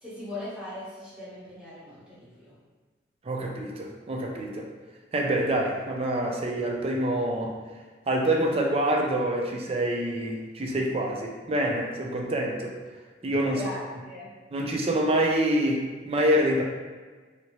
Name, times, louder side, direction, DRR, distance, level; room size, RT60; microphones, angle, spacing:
voice 1, 0.0-2.5 13.5-14.3, left 2 dB, 5° right, -11 dB, 1.0 m, -39 dB
voice 2, 3.2-4.7 5.1-7.6 8.1-12.8 13.2-13.6 14.5-16.6, right 1 dB, 30° right, 0 dB, 0.4 m, -26 dB
3.0 x 2.7 x 2.9 m, 1.4 s
head